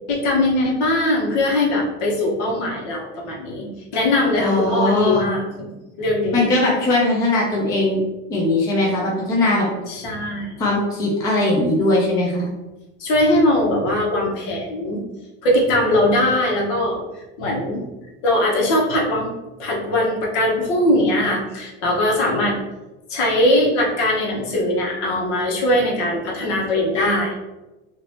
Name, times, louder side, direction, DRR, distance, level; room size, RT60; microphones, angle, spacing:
voice 1, 0.1-3.7 3.9-5.4 6.0-6.4 9.9-10.5 13.0-15.0 15.4-17.0 17.4-17.9 18.2-22.6 23.1-27.3, left 1 dB, 65° left, -3 dB, 1.1 m, -20 dB
voice 2, 4.4-5.3 6.3-8.0 8.3-9.7 10.6-12.5, left 2 dB, 10° left, -3 dB, 0.3 m, -19 dB
2.8 x 2.5 x 3.2 m, 1.1 s
supercardioid pair, 150°, 36 cm